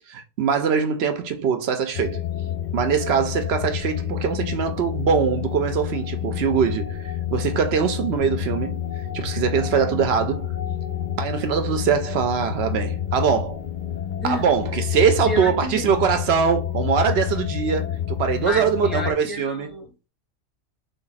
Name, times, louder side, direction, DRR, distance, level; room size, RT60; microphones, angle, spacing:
voice 1, 0.1-2.2 2.7-8.9 9.1-10.5 11.2-13.6 14.2-19.7, right 7 dB, 60° right, 0.7 m, -22 dB
sound 1, 1.9-19.1, left 10 dB, 55° left, 0.5 m, -29 dB
voice 2, 14.2-14.5 15.3-15.8 18.4-20.1, left 1 dB, ahead, 0.7 m, -31 dB
3.4 x 2.3 x 3.9 m
omnidirectional pair, 1.4 m